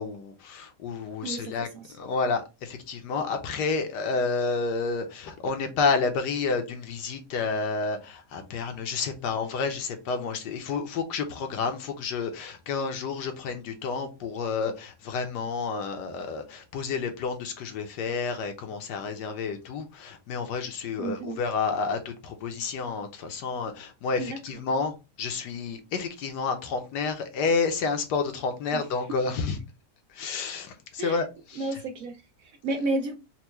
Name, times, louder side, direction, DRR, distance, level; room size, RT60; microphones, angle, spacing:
voice 1, 0.0-1.7 2.0-29.6 30.1-31.6, left 4 dB, 80° left, 1.3 m, -30 dB
voice 2, 1.2-2.0 21.0-21.4 24.1-24.4 28.7-28.8 31.0-31.2 31.6-33.2, right 2 dB, 70° right, 0.8 m, -32 dB
4.5 x 2.2 x 3.0 m
omnidirectional pair, 1.8 m